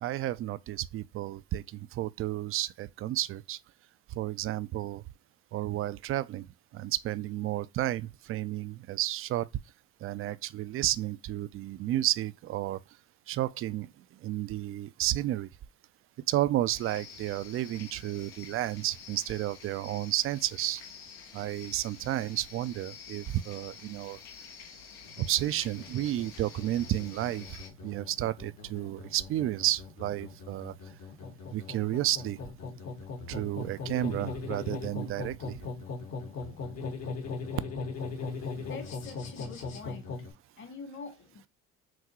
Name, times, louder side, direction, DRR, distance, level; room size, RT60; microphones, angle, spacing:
voice 1, 0.0-3.6 4.1-5.0 5.5-6.5 6.7-9.5 10.0-12.8 13.3-13.9 14.2-15.5 16.3-20.8 21.3-24.2 25.2-30.7 31.5-32.4 33.3-35.6, right 14 dB, 45° right, 0.4 m, -32 dB
sound 1, 16.7-27.7, left 6 dB, 85° left, 1.0 m, -49 dB
sound 2, 25.0-40.3, left 4 dB, 60° left, 1.3 m, -40 dB
voice 2, 38.5-40.0 40.6-41.5, left 5 dB, 40° left, 1.2 m, -45 dB
5.9 x 2.3 x 2.9 m
supercardioid pair, 80°, 30 cm